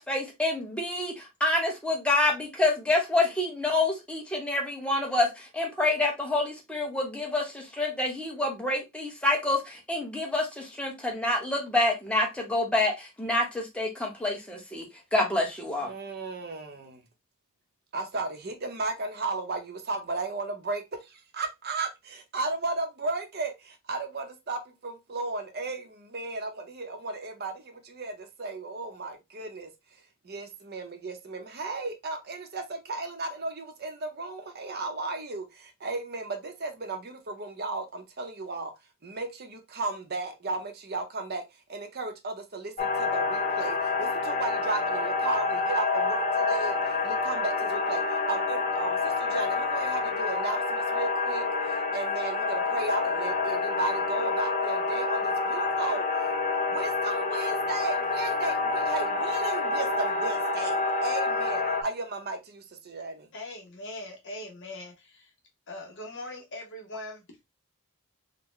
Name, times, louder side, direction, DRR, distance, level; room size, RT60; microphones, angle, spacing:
voice 1, 0.0-14.8 15.1-15.9, left 2 dB, 5° left, 0.9 m, -27 dB
voice 2, 15.8-17.0 17.9-29.7 30.2-38.7 39.0-41.4 41.7-56.3 56.7-63.3, right 3 dB, 45° right, 0.8 m, -35 dB
sound 1, 42.8-61.8, left 3 dB, 35° left, 0.5 m, -28 dB
voice 3, 63.3-65.3 65.7-67.2, left 1 dB, 55° left, 1.0 m, -41 dB
3.7 x 2.2 x 3.1 m
head